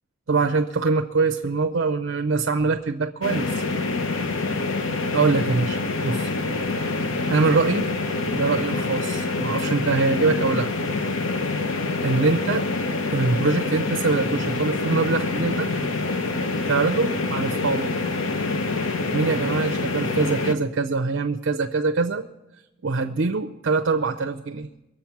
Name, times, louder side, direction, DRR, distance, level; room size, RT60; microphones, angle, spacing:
voice 1, 0.3-3.6 5.1-6.3 7.3-7.9 8.3-10.7 12.0-12.7 13.1-15.7 16.7-17.9 19.1-22.3 22.8-24.7, right 4 dB, 70° right, 4 dB, 0.6 m, -23 dB
sound 1, 3.2-20.6, left 3 dB, 85° left, 1.0 m, -26 dB
22.5 x 7.8 x 5.8 m, 1.0 s
head